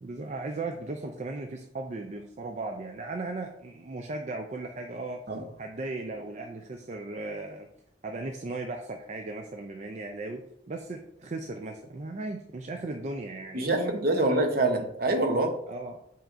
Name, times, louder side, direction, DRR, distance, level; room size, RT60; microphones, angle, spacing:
voice 1, 0.0-5.2 5.6-7.7 8.0-14.4 15.7-16.0, right 2 dB, 40° right, 0.4 m, -37 dB
voice 2, 13.5-15.6, right 2 dB, 55° right, 0.9 m, -25 dB
7.2 x 5.6 x 2.5 m
head